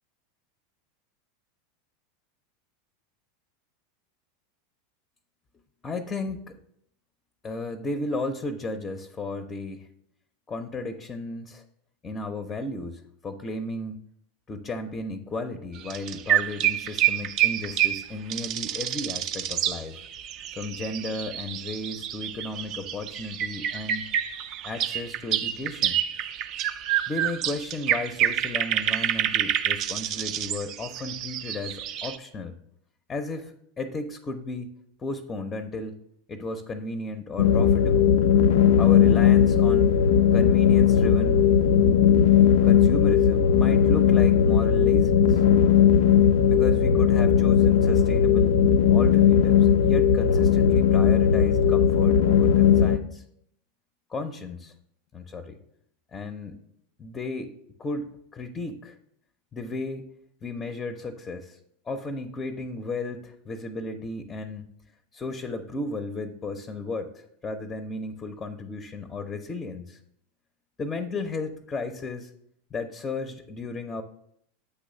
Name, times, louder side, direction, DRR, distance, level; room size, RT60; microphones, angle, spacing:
voice 1, 5.8-6.6 7.4-9.9 10.5-11.6 12.0-14.0 14.5-20.0 20.5-24.0 24.6-26.0 27.1-32.5 33.1-34.7 35.0-36.0 36.3-38.2 38.8-39.9 40.3-41.4 42.6-45.4 46.5-48.6 48.9-53.2 54.1-54.7 55.1-55.6 56.1-56.6 57.0-58.9 59.5-60.1 60.4-61.6 61.9-64.7 65.1-70.0 70.8-72.3 72.7-74.0, left 2 dB, 25° left, 7 dB, 0.6 m, -34 dB
sound 1, 15.8-32.2, right 11 dB, 45° right, 0.4 m, -28 dB
sound 2, 37.4-53.0, left 8 dB, 70° left, 0.3 m, -18 dB
8.1 x 3.1 x 5.4 m, 0.72 s
hypercardioid pair, 90°, 0 cm